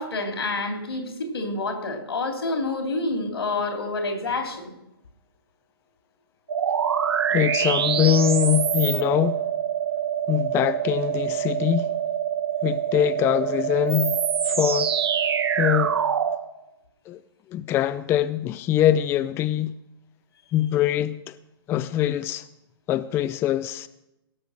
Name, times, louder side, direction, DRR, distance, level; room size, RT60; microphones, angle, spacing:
voice 1, 0.0-4.7, left 2 dB, 80° left, 3.2 m, -28 dB
sound 1, 6.5-16.4, right 8 dB, 75° right, 1.3 m, -25 dB
voice 2, 7.3-9.4 10.3-11.9 12.6-14.2 14.4-14.9 15.6-16.0 17.1-17.2 17.5-19.7 20.5-21.3 21.7-22.5 22.9-23.9, left 11 dB, 20° left, 0.3 m, -23 dB
17.5 x 6.6 x 6.4 m
figure-of-eight pair, 120°, 13 cm